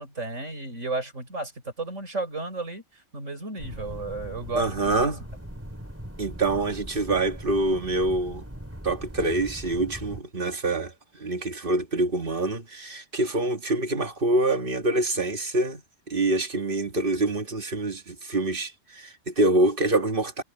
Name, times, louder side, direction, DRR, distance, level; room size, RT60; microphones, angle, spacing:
voice 1, 0.0-1.5 1.8-5.1, right 3 dB, 80° right, 6.6 m, -33 dB
sound 1, 3.6-10.2, equal, 10° right, 4.4 m, -40 dB
voice 2, 4.5-5.3 6.2-8.4 8.8-15.8 16.1-20.4, right 2 dB, 45° right, 1.8 m, -26 dB
omnidirectional pair, 1.3 m